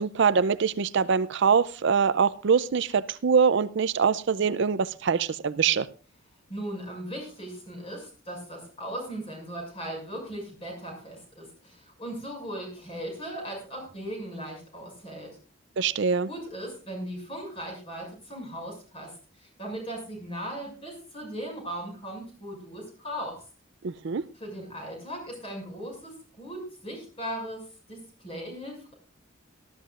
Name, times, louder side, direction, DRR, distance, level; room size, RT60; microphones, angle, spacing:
voice 1, 0.0-5.9 15.8-16.3 23.8-24.2, right 6 dB, 60° right, 0.5 m, -24 dB
voice 2, 6.5-15.3 16.3-23.4 24.3-28.0 28.2-28.9, right 1 dB, 30° left, 6.3 m, -38 dB
19.0 x 13.0 x 2.4 m
head